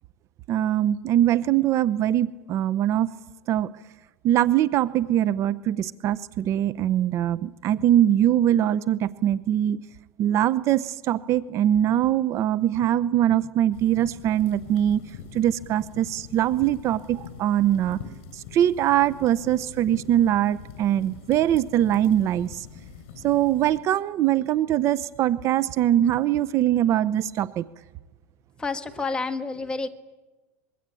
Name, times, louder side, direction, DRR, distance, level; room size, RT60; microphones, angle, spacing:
voice 1, 0.5-3.1 3.5-3.7 4.2-9.8 10.2-15.0 15.3-18.0 18.3-22.7 23.2-27.6, right 11 dB, 40° right, 15 dB, 0.8 m, -22 dB
sound 1, 13.7-23.8, left 8 dB, 65° left, 6.7 m, -44 dB
voice 2, 28.6-29.9, left 3 dB, 10° left, 6 dB, 1.8 m, -29 dB
25.5 x 22.0 x 9.1 m, 1.2 s
supercardioid pair, 130°, 7 cm